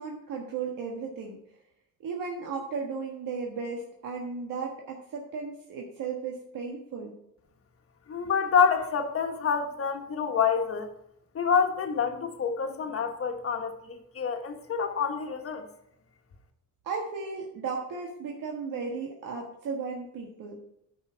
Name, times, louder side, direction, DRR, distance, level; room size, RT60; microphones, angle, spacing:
voice 1, 0.0-1.4 2.0-7.1 16.8-20.6, right 5 dB, 85° right, 0 dB, 1.5 m, -35 dB
voice 2, 8.1-10.9 11.3-15.7, left 6 dB, 45° left, 5 dB, 1.3 m, -27 dB
9.8 x 5.6 x 4.6 m, 0.77 s
cardioid pair, 140°, 32 cm